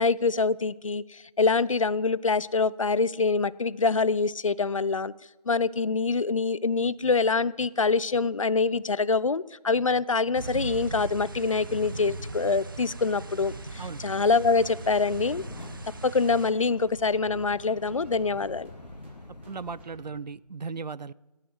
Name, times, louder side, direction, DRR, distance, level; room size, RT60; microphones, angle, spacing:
voice 1, 0.0-5.1 5.5-15.4 16.0-18.7, left 4 dB, 55° left, 20 dB, 0.4 m, -25 dB
sound 1, 10.3-16.5, right 3 dB, 30° right, 0.8 m, -39 dB
sound 2, 11.4-19.8, left 2 dB, 90° left, 1.0 m, -47 dB
voice 2, 13.8-14.1 19.5-21.1, right 4 dB, 90° right, 20 dB, 0.5 m, -37 dB
sound 3, 14.1-20.2, right 2 dB, 15° right, 1.4 m, -52 dB
17.0 x 6.4 x 7.7 m, 1.1 s
figure-of-eight pair, 165°, 21 cm